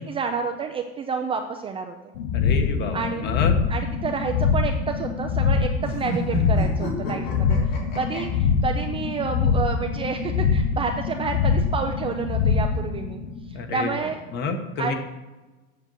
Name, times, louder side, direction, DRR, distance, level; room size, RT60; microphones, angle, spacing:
voice 1, 0.1-1.9 2.9-3.3 3.7-7.6 7.9-13.2 13.7-14.2 14.8-14.9, right 5 dB, 20° right, 4 dB, 0.4 m, -29 dB
sound 1, 2.2-13.9, left 6 dB, 90° left, 1.0 m, -24 dB
voice 2, 2.3-3.6 13.5-14.9, left 4 dB, 35° left, 6 dB, 1.1 m, -29 dB
sound 2, 5.8-8.2, right 1 dB, 70° left, 3.5 m, -30 dB
8.0 x 7.4 x 6.2 m, 1.2 s
cardioid pair, 175°, 30 cm